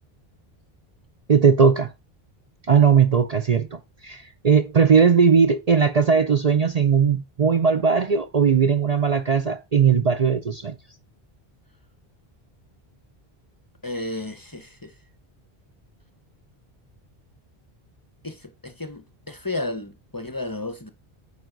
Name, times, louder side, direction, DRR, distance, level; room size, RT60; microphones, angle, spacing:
voice 1, 1.3-1.9 2.7-10.8, right 6 dB, 45° right, 0.7 m, -18 dB
voice 2, 13.8-14.9 18.2-20.9, left 2 dB, 20° left, 0.9 m, -33 dB
9.3 x 5.0 x 3.9 m
omnidirectional pair, 1.0 m